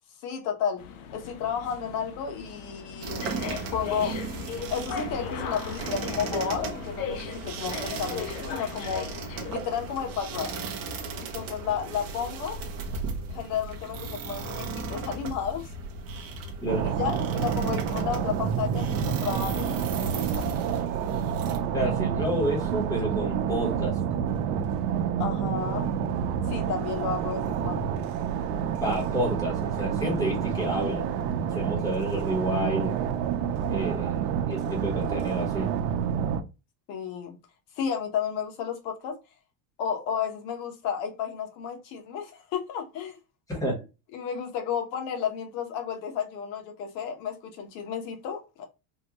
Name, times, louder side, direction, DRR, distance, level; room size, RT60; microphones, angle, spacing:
voice 1, 0.2-0.8 1.1-3.3 3.7-4.2 4.7-9.1 9.5-10.6 11.2-12.6 13.3-15.7 16.8-20.5 25.2-25.9 26.5-27.8 36.9-37.4 37.8-39.2 39.8-43.2 44.1-48.6, left 7 dB, 90° left, 1.0 m, -32 dB
sound 1, 0.8-9.6, left 7 dB, 60° left, 0.6 m, -38 dB
sound 2, 3.0-21.6, right 4 dB, 30° right, 0.6 m, -36 dB
sound 3, 16.7-36.4, right 8 dB, 75° right, 0.7 m, -28 dB
voice 2, 21.7-24.0 28.8-31.1 31.5-33.0 33.7-35.7 43.5-43.8, right 1 dB, 5° left, 1.0 m, -29 dB
3.7 x 2.2 x 2.9 m
cardioid pair, 180°, 49 cm